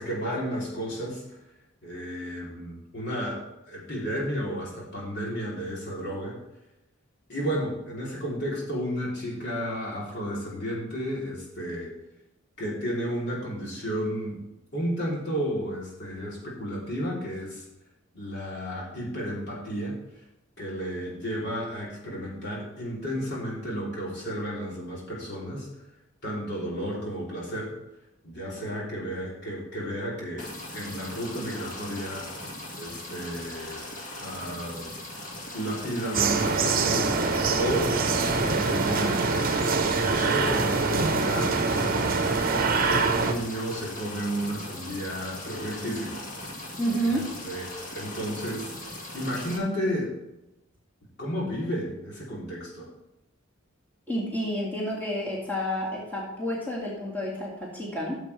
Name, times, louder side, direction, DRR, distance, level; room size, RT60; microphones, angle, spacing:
voice 1, 0.0-1.4 1.8-3.4 3.7-6.4 7.3-11.9 12.6-14.4 14.7-17.6 18.1-20.0 20.6-25.7 26.2-27.7 28.2-32.3 32.8-33.8 34.2-34.9 35.5-37.2 37.6-37.9 38.3-42.3 42.7-46.2 47.5-47.6 47.9-48.7 49.1-50.1 51.2-52.9, equal, 55° left, -4 dB, 3.3 m, -32 dB
sound 1, 30.4-49.6, left 1 dB, 40° left, 2.0 m, -39 dB
sound 2, 36.1-43.3, right 4 dB, 45° right, 0.9 m, -24 dB
voice 2, 46.8-47.2 54.1-58.2, equal, 10° left, -5 dB, 2.2 m, -29 dB
14.0 x 7.2 x 3.4 m, 0.92 s
head